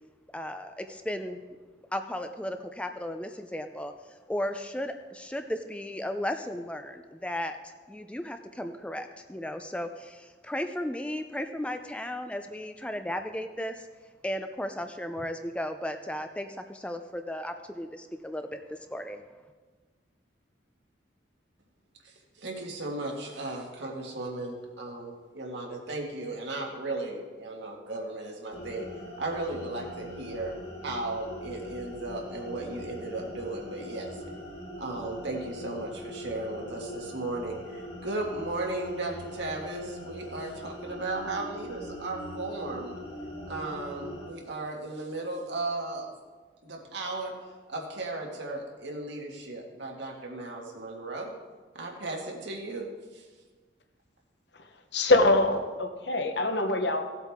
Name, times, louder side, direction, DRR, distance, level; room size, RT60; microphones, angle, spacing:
voice 1, 0.3-1.4 1.9-3.9 4.3-13.9 14.2-19.2, left 1 dB, 5° left, 7 dB, 0.4 m, -35 dB
voice 2, 22.0-28.8 29.2-30.6 30.8-34.2 34.8-42.9 43.5-46.1 46.6-47.3 47.7-51.3 51.7-52.9 53.1-53.3, right 2 dB, 75° right, 0 dB, 1.9 m, -36 dB
sound 1, 28.5-44.3, left 1 dB, 30° left, 2.0 m, -42 dB
voice 3, 54.9-57.1, left 2 dB, 70° left, 6 dB, 1.0 m, -24 dB
16.5 x 8.1 x 3.6 m, 1.4 s
head